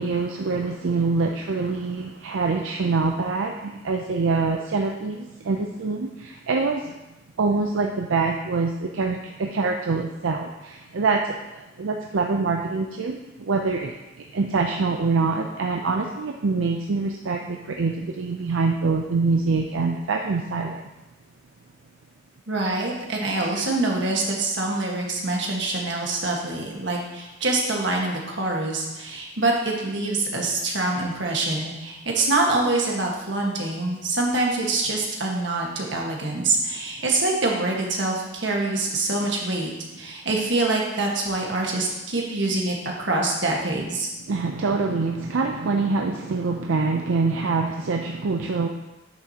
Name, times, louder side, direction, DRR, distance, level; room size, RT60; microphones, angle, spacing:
voice 1, 0.0-6.9 7.4-20.8 44.3-48.7, right 4 dB, 85° right, 2 dB, 0.5 m, -25 dB
voice 2, 22.5-39.7 40.0-44.1, right 2 dB, 65° right, -1 dB, 1.5 m, -25 dB
9.2 x 6.3 x 2.9 m, 1.0 s
head